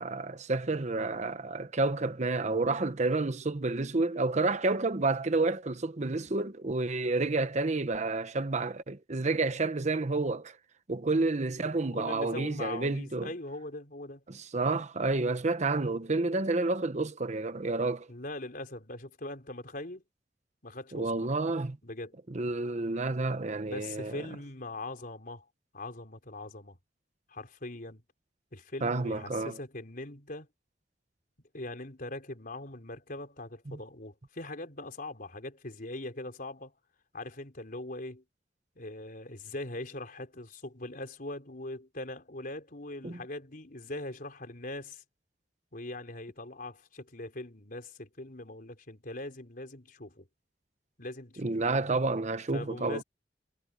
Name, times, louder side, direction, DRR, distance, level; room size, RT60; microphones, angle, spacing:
voice 1, 0.0-10.6 10.9-13.3 14.3-18.1 20.9-21.8 22.3-24.2 28.8-29.6 33.7-33.8 43.0-43.2 51.4-53.0, right 3 dB, 40° right, 1.0 m, -30 dB
voice 2, 12.0-14.2 18.1-20.0 20.6-21.3 21.8-22.2 23.7-25.4 25.7-26.8 27.3-28.0 28.5-30.5 31.5-36.7 37.1-38.2 38.8-45.0 45.7-50.3 51.0-51.7 52.5-53.0, left 2 dB, 55° left, 4.2 m, -41 dB
head